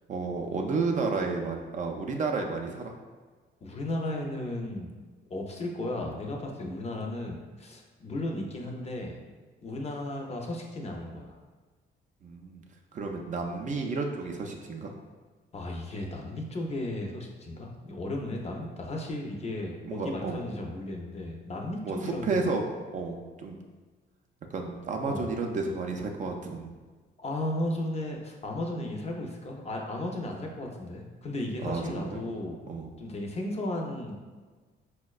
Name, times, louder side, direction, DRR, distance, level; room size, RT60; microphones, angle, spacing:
voice 1, 0.1-2.9 12.2-12.6 12.9-14.9 19.8-20.4 21.8-23.6 24.5-26.7 31.6-32.2 32.7-32.9, right 3 dB, 40° right, 2 dB, 0.4 m, -32 dB
voice 2, 3.6-4.9 5.3-9.2 9.6-11.4 15.5-22.6 25.1-25.3 27.2-32.6 33.0-34.1, left 1 dB, 30° left, 1 dB, 0.5 m, -35 dB
4.1 x 2.1 x 2.3 m, 1.4 s
cardioid pair, 90°, 20 cm